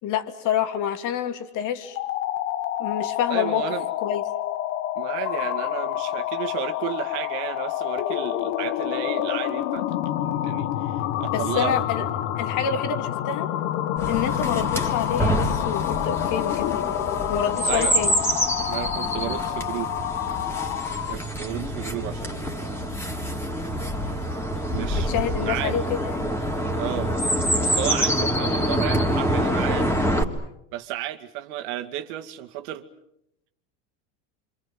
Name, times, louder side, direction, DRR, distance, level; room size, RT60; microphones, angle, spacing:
voice 1, 0.0-2.0 2.8-3.6 4.0-4.2 11.3-12.1 12.4-13.5 14.1-16.7 17.3-18.2 24.9-26.3, left 9 dB, 55° left, 8 dB, 3.0 m, -27 dB
sound 1, 1.9-21.3, left 12 dB, 75° left, 1.4 m, -28 dB
voice 2, 3.3-3.9 4.9-12.2 14.5-14.7 17.6-18.0 18.7-19.9 21.1-23.0 24.7-25.1 25.4-25.8 26.8-27.1 27.6-30.0 30.7-32.9, right 13 dB, 70° right, 5 dB, 2.3 m, -33 dB
Chirp tweet, 14.0-30.2, equal, 5° left, 3.2 m, -26 dB
26.5 x 26.5 x 7.6 m, 0.80 s
supercardioid pair, 120°, 38 cm